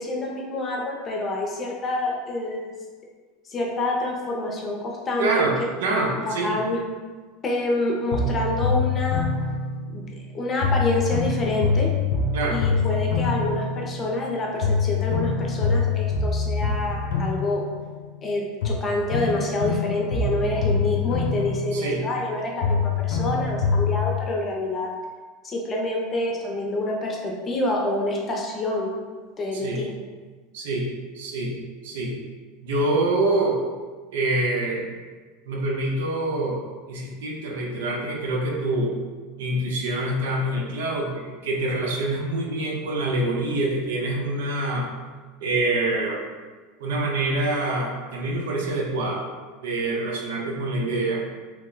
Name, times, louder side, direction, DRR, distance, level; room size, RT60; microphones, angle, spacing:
voice 1, 0.0-2.7 3.5-5.4 6.2-6.8 7.4-9.3 9.9-10.0 10.3-11.9 12.5-17.6 18.2-24.9 25.4-28.9 29.4-29.9, left 2 dB, 25° left, -1 dB, 0.6 m, -27 dB
voice 2, 5.2-5.6 5.8-6.6 12.3-12.7 21.7-22.0 29.5-29.9 30.5-30.9 31.1-31.6 31.8-32.2 32.6-33.6 34.1-34.9 35.5-36.6 36.9-39.0 39.4-44.9 45.4-46.2 46.8-49.3 49.6-51.2, right 2 dB, 85° right, 0 dB, 0.6 m, -25 dB
sound 1, 8.1-10.3 10.6-14.3 14.6-18.3 18.6-22.3 22.6-24.2, left 4 dB, 85° left, 0.6 m, -25 dB
2.9 x 2.1 x 3.8 m, 1.4 s
supercardioid pair, 135°, 0 cm